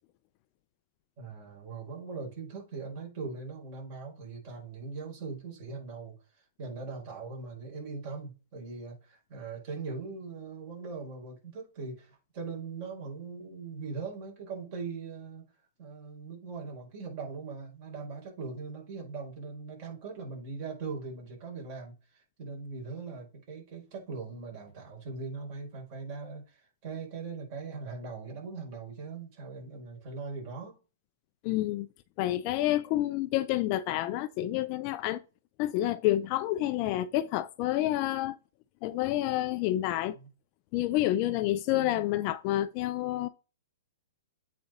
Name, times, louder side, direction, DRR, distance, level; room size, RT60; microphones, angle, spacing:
voice 1, 1.2-6.1 6.6-15.4 15.8-30.8 40.1-40.3 41.7-42.1, right 4 dB, 35° right, 4.5 m, -40 dB
voice 2, 31.4-31.9 32.2-35.2 35.6-38.4 38.8-40.2 40.7-43.3, left 14 dB, 30° left, 0.4 m, -29 dB
8.6 x 4.2 x 3.8 m
hypercardioid pair, 165°, 0 cm